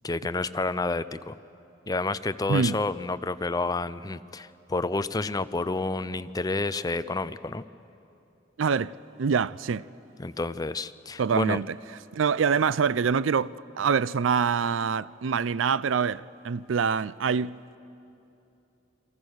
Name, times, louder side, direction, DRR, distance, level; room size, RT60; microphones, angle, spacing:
voice 1, 0.0-1.4 1.9-7.6 10.2-11.6, left 3 dB, 20° left, 0.5 m, -29 dB
voice 2, 8.6-9.8 11.2-11.7 12.1-17.5, right 6 dB, 85° right, 0.4 m, -25 dB
29.0 x 23.0 x 6.4 m
head